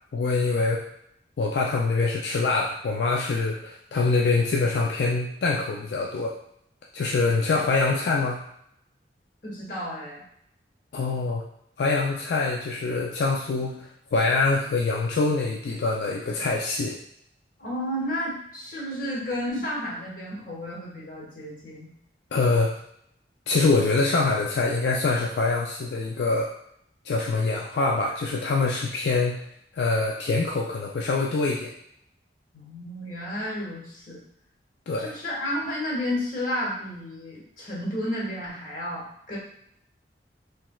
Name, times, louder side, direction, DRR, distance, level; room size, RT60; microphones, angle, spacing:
voice 1, 0.1-0.8 1.4-6.3 6.9-8.4 10.9-11.4 11.8-17.0 22.3-22.7 23.5-26.5 27.1-29.4 29.7-31.7 34.9-35.1, left 3 dB, 65° left, -2 dB, 0.4 m, -24 dB
voice 2, 9.4-10.2 17.6-21.9 32.5-34.2 35.0-39.4, left 1 dB, 50° left, -5 dB, 1.2 m, -32 dB
3.2 x 3.0 x 2.3 m, 0.72 s
head